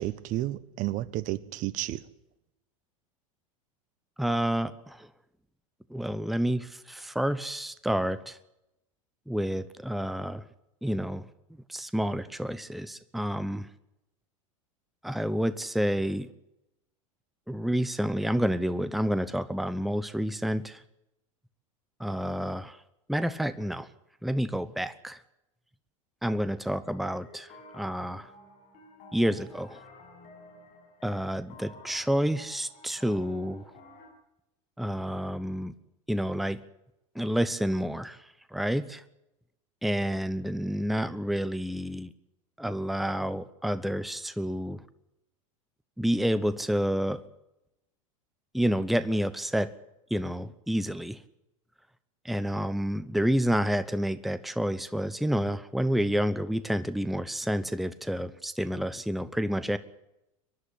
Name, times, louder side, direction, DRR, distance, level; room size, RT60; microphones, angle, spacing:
voice 1, 0.0-2.0, right 15 dB, 50° right, 18 dB, 1.2 m, -31 dB
voice 2, 4.2-5.0 5.9-8.3 9.3-10.4 10.8-11.2 11.7-13.7 15.0-16.3 17.5-20.8 22.0-22.7 23.1-23.9 24.2-25.2 26.2-27.5 27.7-28.3 29.1-29.8 31.0-33.6 34.8-35.7 36.1-36.6 37.2-38.2 38.5-39.0 39.8-42.1 42.6-44.8 46.0-47.2 48.5-49.7 50.1-51.2 52.2-59.8, equal, ahead, 14 dB, 1.0 m, -29 dB
sound 1, 26.8-34.1, left 2 dB, 50° left, 7.1 m, -52 dB
24.0 x 11.5 x 10.0 m, 0.89 s
hypercardioid pair, 90°, 17 cm